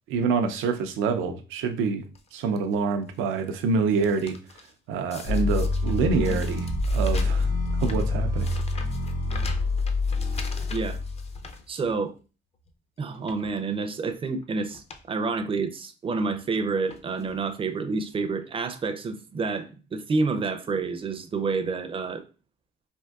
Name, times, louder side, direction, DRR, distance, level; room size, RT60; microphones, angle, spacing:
voice 1, 0.1-2.0 2.3-4.4 4.9-7.5 7.8-8.6, right 5 dB, 85° right, 0.4 m, -26 dB
sound 1, 2.1-2.6 3.1-4.7 5.1-12.2 12.6-12.7 13.1-13.5 14.3-14.4 14.7-15.1 15.4-15.5 16.4-16.5 16.9-17.4 18.1-18.2 18.4-18.5, left 3 dB, 30° left, 0.4 m, -44 dB
sound 2, 5.3-11.5, left 2 dB, 75° left, 1.2 m, -26 dB
voice 2, 11.7-12.1 13.0-22.2, right 4 dB, 25° right, 0.4 m, -29 dB
3.5 x 2.5 x 2.3 m
cardioid pair, 90°, 20 cm